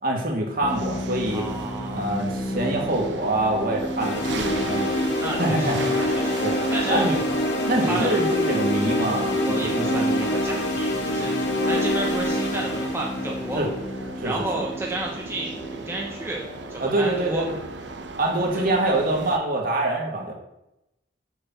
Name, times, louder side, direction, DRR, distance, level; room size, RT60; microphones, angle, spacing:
voice 1, 0.0-1.5 1.9-4.9 5.4-5.8 6.4-6.6 6.9-7.2 7.7-10.3 13.5-13.7 14.2-14.6 16.8-17.6 18.2-20.3, right 1 dB, 50° right, 0 dB, 2.2 m, -25 dB
sound 1, 0.6-19.3, equal, 25° left, 0.9 m, -34 dB
sound 2, 0.7-19.4, right 3 dB, 85° right, 0.9 m, -39 dB
voice 2, 1.3-2.1 5.2-7.1 7.8-8.1 9.3-11.4 11.7-13.7 14.2-15.5 15.9-16.4 16.7-17.4 18.6-18.7, right 2 dB, 15° right, -2 dB, 1.0 m, -32 dB
sound 3, 4.0-14.1, left 1 dB, 80° left, 2.0 m, -26 dB
6.7 x 6.6 x 7.5 m, 0.89 s
head